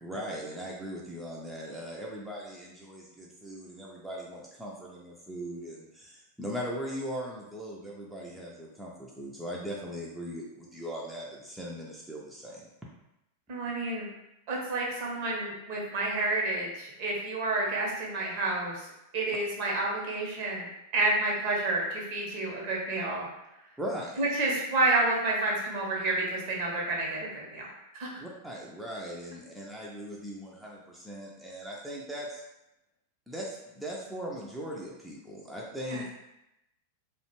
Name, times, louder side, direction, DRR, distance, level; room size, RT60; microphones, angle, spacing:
voice 1, 0.0-12.7 23.8-24.2 28.2-32.4 33.3-36.2, equal, 5° right, -4 dB, 0.4 m, -39 dB
voice 2, 13.5-14.1 14.5-20.7 20.9-23.3 24.2-27.7 27.9-28.1 35.9-36.0, right 2 dB, 45° right, -2 dB, 0.7 m, -29 dB
2.3 x 2.1 x 3.0 m, 0.87 s
figure-of-eight pair, 90°, 0 cm